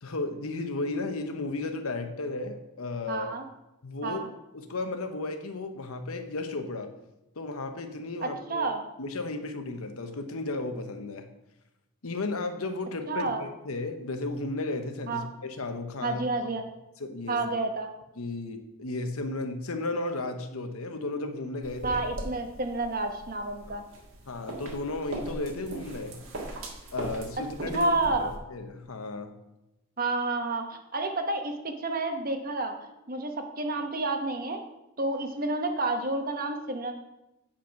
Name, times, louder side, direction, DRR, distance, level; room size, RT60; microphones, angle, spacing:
voice 1, 0.0-3.3 3.8-4.2 4.5-6.9 7.4-8.7 9.0-11.3 12.0-16.2 17.0-17.4 18.2-22.0 23.7-23.8 24.3-26.2 26.9-27.9 28.5-29.3, left 2 dB, 80° left, 7 dB, 1.0 m, -34 dB
voice 2, 3.1-3.4 4.0-4.3 8.2-8.8 13.1-13.4 15.1-15.3 16.0-16.7 17.3-17.9 21.8-23.8 27.7-28.3 30.0-34.6 35.0-36.9, right 2 dB, 40° right, 5 dB, 1.0 m, -30 dB
sound 1, 21.6-28.4, right 1 dB, 65° right, 1.7 m, -40 dB
8.6 x 5.2 x 5.8 m, 0.92 s
head